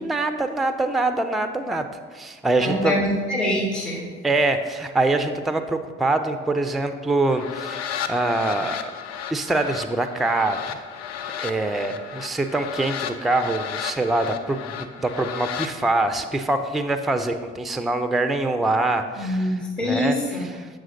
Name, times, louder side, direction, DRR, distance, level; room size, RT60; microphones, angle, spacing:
voice 1, 0.0-1.9 2.1-3.0 4.2-8.9 9.3-10.8 11.4-20.7, right 2 dB, ahead, 8 dB, 0.4 m, -24 dB
voice 2, 2.6-4.0 19.2-20.4, left 1 dB, 85° left, -9 dB, 1.4 m, -24 dB
sound 1, 7.2-15.7, left 8 dB, 50° left, 0.5 m, -34 dB
7.3 x 6.3 x 2.6 m, 1.5 s
figure-of-eight pair, 45°, 34 cm